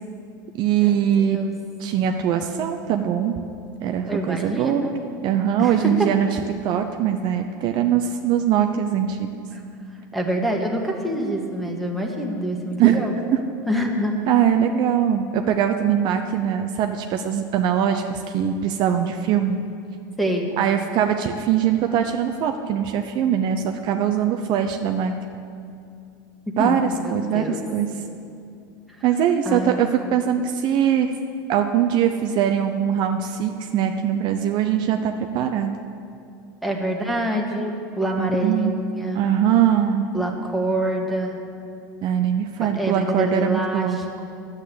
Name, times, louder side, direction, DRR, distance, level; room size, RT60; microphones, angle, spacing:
voice 1, 0.5-1.4 1.8-3.4 3.8-4.9 5.2-9.3 12.8-13.0 13.3-13.4 14.3-19.6 20.6-25.1 26.6-26.8 27.1-27.5 27.7-27.9 29.0-31.1 31.5-35.7 38.2-38.7 39.1-40.1 42.0-44.0, right 9 dB, 45° right, 6 dB, 0.6 m, -22 dB
voice 2, 1.2-1.5 4.0-4.9 5.6-6.1 10.1-13.1 13.7-14.2 20.2-20.5 26.6-27.6 29.0-29.1 29.4-29.8 36.6-39.2 40.1-41.4 42.6-44.2, right 1 dB, ahead, -1 dB, 1.6 m, -26 dB
10.5 x 8.1 x 8.4 m, 2.5 s
supercardioid pair, 125°, 11 cm